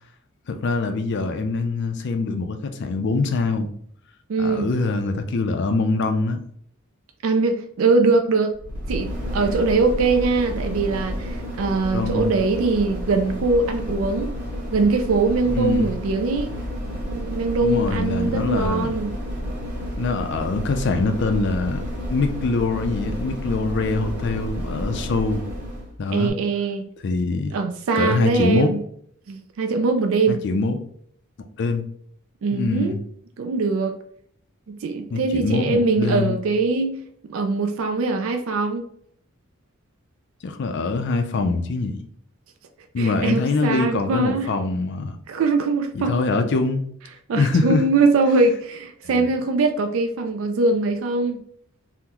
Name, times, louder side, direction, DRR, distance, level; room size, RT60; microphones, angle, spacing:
voice 1, 0.5-3.7 4.4-6.4 11.9-12.3 15.4-16.0 17.6-19.0 20.0-21.8 22.1-25.4 26.0-26.3 27.0-27.5 28.0-28.7 30.3-30.8 31.6-31.9 32.5-33.0 35.1-36.4 40.4-42.0 42.9-45.2 45.9-46.8 47.3-47.8 49.0-49.3, left 3 dB, 55° left, 0.4 m, -23 dB
voice 2, 4.3-4.7 7.2-8.5 8.9-14.3 14.7-16.5 17.0-19.1 26.1-26.9 27.3-28.8 29.3-30.4 32.4-33.0 33.4-33.9 34.7-37.0 37.3-38.8 43.0-44.6 45.3-46.1 47.3-51.4, right 3 dB, 70° right, 0.4 m, -22 dB
sound 1, 8.5-25.9 26.3-26.4, equal, 5° right, 0.9 m, -30 dB
3.7 x 2.1 x 2.9 m
head